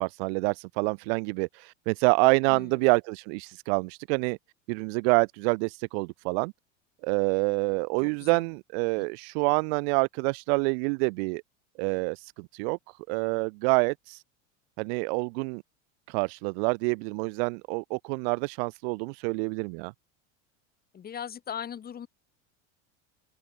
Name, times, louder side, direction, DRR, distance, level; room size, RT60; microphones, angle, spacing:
voice 1, 0.0-4.4 4.7-6.5 7.0-11.4 11.8-12.8 13.1-14.2 14.8-15.6 16.1-19.9, right 33 dB, 65° right, 0.5 m, -27 dB
voice 2, 2.5-2.8 8.0-8.4 9.0-9.1 20.9-22.1, left 8 dB, 25° left, 3.5 m, -39 dB
open air
supercardioid pair, 135°, 34 cm